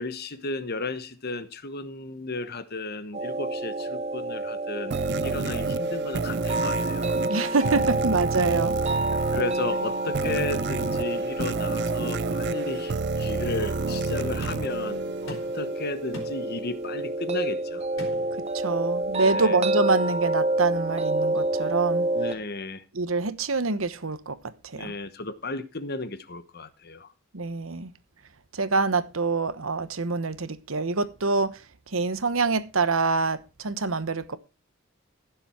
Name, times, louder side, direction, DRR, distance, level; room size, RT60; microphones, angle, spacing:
voice 1, 0.0-4.9 5.2-7.1 9.3-17.9 19.2-19.6 22.1-22.8 24.7-27.1, left 3 dB, 50° left, 1.2 m, -34 dB
sound 1, 3.1-22.3, right 2 dB, 30° right, 1.0 m, -28 dB
sound 2, 4.9-15.7, right 4 dB, 55° right, 0.5 m, -31 dB
voice 2, 7.3-8.7 18.5-22.1 22.9-24.4 24.6-24.9 27.3-27.9 28.5-31.6 31.9-34.4, right 3 dB, 75° right, 1.1 m, -26 dB
sound 3, 14.4-14.8 15.3-15.7 16.1-16.5 18.0-18.4, left 1 dB, 70° left, 4.5 m, -40 dB
16.0 x 7.2 x 4.4 m
head